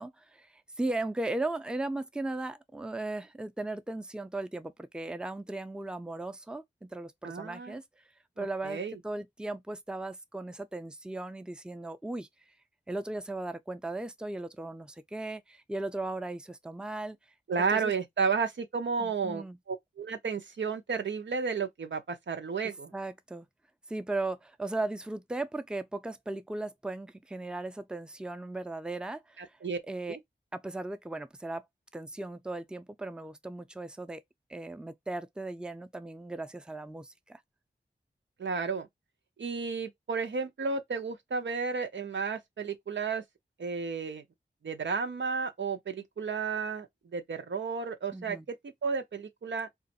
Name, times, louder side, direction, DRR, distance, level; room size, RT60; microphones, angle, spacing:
voice 1, 0.0-7.8 8.4-12.3 12.9-17.2 17.6-17.9 19.0-19.6 22.9-23.5 23.9-29.6 29.8-30.2 30.5-31.7 31.9-34.2 34.5-37.4 48.1-48.5, right 2 dB, 5° right, 0.5 m, -37 dB
voice 2, 7.2-7.8 8.4-9.0 17.5-22.9 29.4-29.8 30.1-30.2 38.4-38.9 39.4-43.2 43.6-44.2 44.6-46.9 47.1-48.4 48.6-49.7, right 5 dB, 80° right, 0.7 m, -32 dB
2.5 x 2.4 x 4.0 m
cardioid pair, 40°, 19 cm